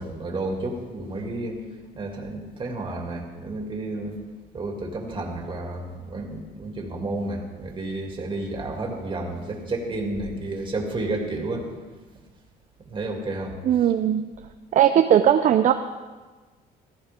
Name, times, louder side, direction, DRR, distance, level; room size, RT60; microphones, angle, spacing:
voice 1, 0.0-1.6 2.0-4.2 4.5-11.6 12.9-13.5, right 2 dB, 30° right, 1 dB, 2.8 m, -31 dB
voice 2, 13.6-14.3 14.7-15.7, right 10 dB, 50° right, 7 dB, 0.6 m, -18 dB
16.5 x 14.5 x 3.8 m, 1.3 s
cardioid pair, 110°, 17 cm